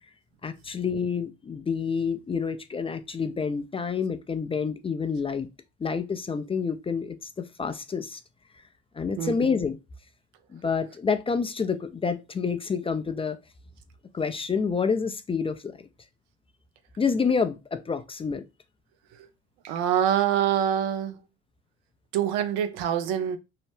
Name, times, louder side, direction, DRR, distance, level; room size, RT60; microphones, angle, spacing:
voice 1, 0.4-5.5 5.8-8.2 8.9-9.8 10.5-13.4 14.1-15.8 17.0-18.4, left 5 dB, 20° left, 0.3 m, -28 dB
voice 2, 19.6-21.2 22.1-23.4, right 10 dB, 85° right, 0.5 m, -25 dB
2.8 x 2.1 x 3.1 m
supercardioid pair, 70°, 29 cm